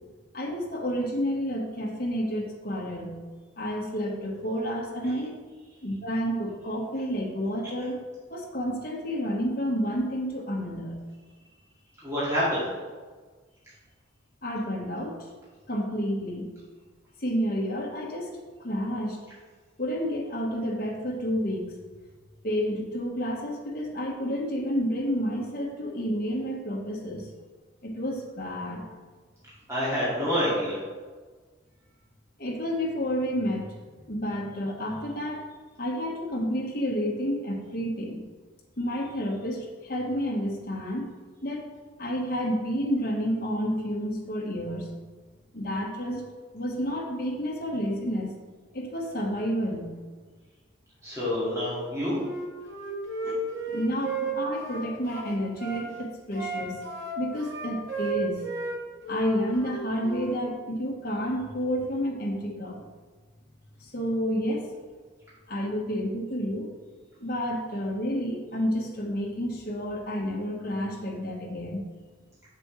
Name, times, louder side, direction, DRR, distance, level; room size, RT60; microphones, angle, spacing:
voice 1, 0.3-3.2 3.6-5.4 5.8-8.0 8.3-11.0 14.4-15.2 15.7-16.5 17.2-18.3 18.6-19.2 19.8-21.7 22.4-27.3 27.8-28.9 32.4-33.7 34.1-35.4 35.8-38.2 38.8-41.1 41.4-41.6 42.0-44.9 45.5-46.2 46.5-48.3 48.7-49.9 53.7-56.8 57.1-58.4 59.1-62.8 63.8-64.7 65.5-66.7 67.2-71.8, equal, 45° left, -2 dB, 1.4 m, -30 dB
voice 2, 12.0-12.7 29.7-30.8 51.0-52.2, equal, 15° right, -10 dB, 2.2 m, -27 dB
Wind instrument woodwind instrument, 52.2-55.9 56.3-58.8 59.0-60.3, right 4 dB, 75° right, 1.7 m, -34 dB
7.5 x 7.4 x 3.2 m, 1.4 s
head